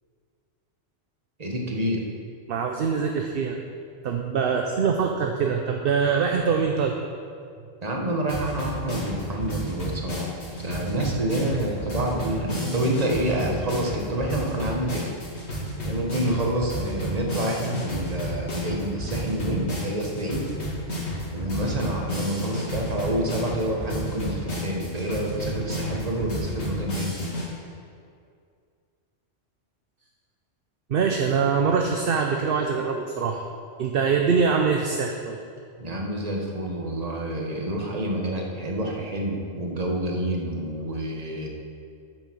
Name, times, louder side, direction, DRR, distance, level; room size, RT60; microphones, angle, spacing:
voice 1, 1.4-2.0 7.8-15.1 15.4-15.6 15.8-20.5 21.3-27.2 35.8-41.5, right 1 dB, 35° right, 0 dB, 1.4 m, -28 dB
voice 2, 2.5-3.6 4.0-6.9 30.9-33.4 33.8-35.4, right 5 dB, 55° right, 3 dB, 0.8 m, -23 dB
sound 1, 8.3-27.5, equal, 60° left, 2.4 m, -31 dB
9.3 x 7.0 x 6.2 m, 2.3 s
omnidirectional pair, 1.3 m